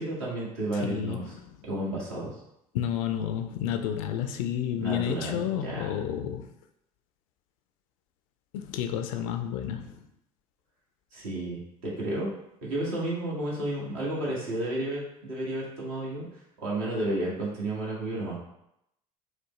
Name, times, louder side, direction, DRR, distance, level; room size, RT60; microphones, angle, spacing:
voice 1, 0.0-1.3 1.6-2.4 4.7-6.0 11.1-12.3 12.6-16.2 16.6-18.4, right 1 dB, 65° right, -5 dB, 1.2 m, -32 dB
voice 2, 0.8-1.3 2.7-6.5 8.5-9.9, left 9 dB, 65° left, 7 dB, 0.4 m, -30 dB
4.8 x 2.0 x 3.0 m, 0.81 s
figure-of-eight pair, 60°, 19 cm